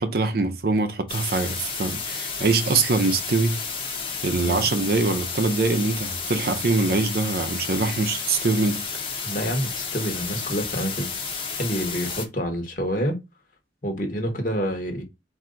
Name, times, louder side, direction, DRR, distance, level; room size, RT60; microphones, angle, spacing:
voice 1, 0.0-3.6 4.2-8.8, right 3 dB, 55° right, 0.6 m, -23 dB
sound 1, 1.1-12.3, left 5 dB, 30° left, 0.9 m, -31 dB
voice 2, 9.2-11.1 11.6-13.2 13.8-15.0, equal, 45° left, 1.2 m, -27 dB
4.4 x 2.7 x 3.7 m
head